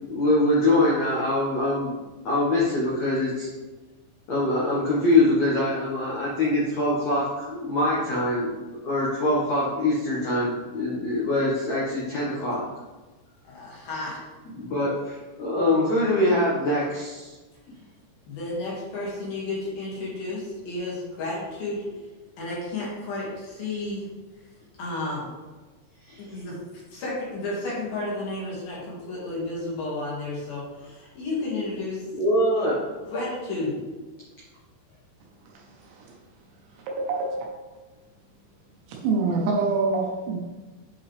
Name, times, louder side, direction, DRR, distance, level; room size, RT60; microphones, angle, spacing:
voice 1, 0.0-1.9 2.2-3.5 4.3-12.6 14.5-17.3 26.1-26.3 32.1-32.8, left 1 dB, 75° left, -7 dB, 1.6 m, -24 dB
voice 2, 13.4-14.2 18.3-21.8 22.4-24.1 24.8-25.3 26.2-32.1 33.1-33.8, left 2 dB, 55° left, -6 dB, 3.4 m, -32 dB
voice 3, 35.5-36.2 36.8-37.5 38.9-40.4, right 3 dB, 75° right, -1 dB, 3.0 m, -26 dB
8.2 x 5.4 x 3.3 m, 1.2 s
omnidirectional pair, 5.6 m